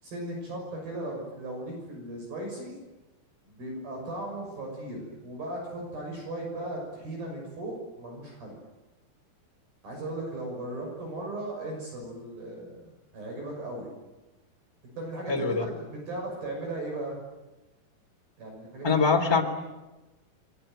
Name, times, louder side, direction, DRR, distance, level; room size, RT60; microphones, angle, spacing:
voice 1, 0.0-2.8 3.5-8.6 9.8-13.9 15.0-17.2 18.4-19.0, right 1 dB, 55° right, 0 dB, 7.8 m, -37 dB
voice 2, 15.3-15.6 18.8-19.4, left 4 dB, 10° left, 3 dB, 1.9 m, -23 dB
29.5 x 22.0 x 8.9 m, 1.1 s
omnidirectional pair, 5.1 m